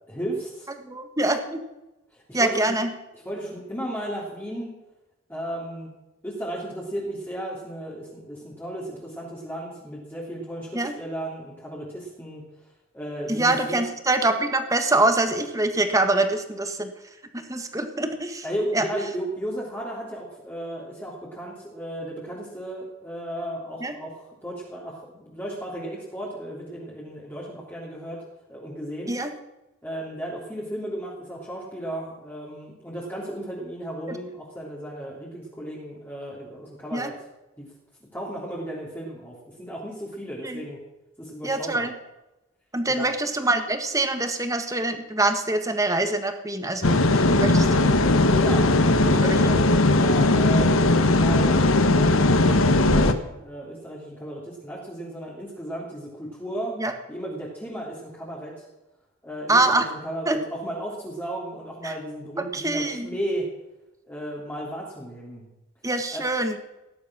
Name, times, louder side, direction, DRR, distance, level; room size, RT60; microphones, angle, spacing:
voice 1, 0.1-0.7 2.1-2.8 3.1-4.7 5.3-5.9 6.2-12.4 12.9-13.8 18.4-28.2 28.5-29.1 29.8-37.1 37.6-37.7 38.1-40.8 41.2-41.9 42.9-43.1 48.3-56.8 57.1-58.6 59.2-63.5 64.1-65.5 66.1-66.2, right 1 dB, 10° left, -5 dB, 3.3 m, -34 dB
voice 2, 0.8-1.6 2.3-2.9 10.7-10.9 13.3-16.9 17.5-18.4 18.7-18.8 23.8-23.9 29.1-29.3 34.1-34.2 36.9-37.1 40.4-40.6 41.4-41.9 42.7-48.0 49.2-49.4 56.8-56.9 59.5-59.9 60.3-60.4 61.8-61.9 62.5-63.2 65.8-66.6, right 2 dB, 15° right, 7 dB, 1.6 m, -24 dB
sound 1, 46.8-53.1, left 2 dB, 70° left, 1.3 m, -19 dB
18.0 x 12.0 x 6.2 m, 0.98 s
head